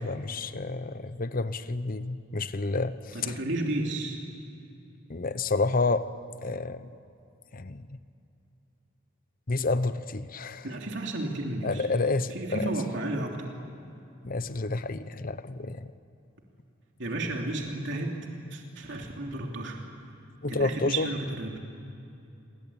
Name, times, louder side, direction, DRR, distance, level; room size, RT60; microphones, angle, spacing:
voice 1, 0.0-3.4 5.1-6.1 6.4-6.9 7.5-8.0 9.5-10.7 11.6-12.8 14.2-15.9 20.4-21.1, left 3 dB, 45° left, 13 dB, 0.9 m, -29 dB
voice 2, 3.1-4.2 10.6-11.9 12.3-13.5 17.0-18.2 18.5-19.8 20.5-21.6, right 2 dB, 65° right, 1 dB, 3.0 m, -32 dB
27.5 x 22.0 x 8.8 m, 2.8 s
head